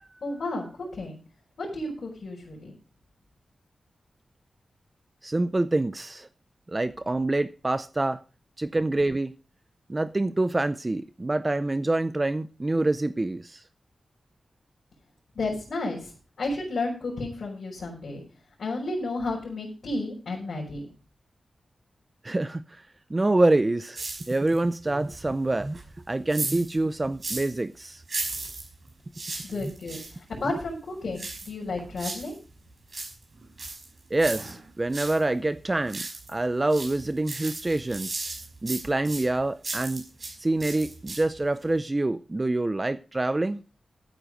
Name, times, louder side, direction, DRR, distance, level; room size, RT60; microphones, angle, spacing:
voice 1, 0.2-1.2 1.6-2.7 15.4-18.2 18.6-20.9 29.4-32.3, left 2 dB, 70° left, 5.5 m, -32 dB
voice 2, 5.2-6.3 6.7-8.2 8.6-9.3 9.9-13.6 22.2-22.8 23.1-25.8 26.1-28.0 29.6-29.7 34.1-36.0 36.3-38.2 38.6-40.0 40.4-43.6, right 2 dB, 20° right, 0.5 m, -26 dB
sound 1, 23.9-24.7 25.0-27.6 28.0-30.2 31.1-32.4 32.7-35.2 35.6-36.4 36.7-40.3 40.6-41.4 41.7-41.8, right 3 dB, 45° right, 5.4 m, -36 dB
13.5 x 9.0 x 5.0 m
wide cardioid pair, 155°, 0 cm